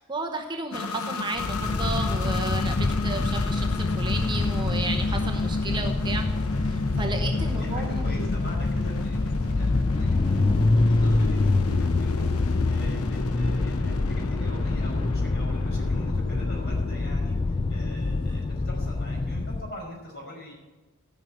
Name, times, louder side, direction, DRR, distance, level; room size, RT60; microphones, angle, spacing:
voice 1, 0.0-6.2 6.6-8.0, right 3 dB, 20° right, 3 dB, 0.9 m, -33 dB
sound 1, 0.7-19.2, left 3 dB, 80° left, 0.8 m, -34 dB
sound 2, 1.4-19.7, left 3 dB, 20° left, 0.3 m, -26 dB
sound 3, 1.4-10.8, right 1 dB, 45° right, 1.3 m, -45 dB
voice 2, 7.3-20.5, equal, 50° left, -2 dB, 5.6 m, -43 dB
14.0 x 6.3 x 8.6 m, 1.2 s
head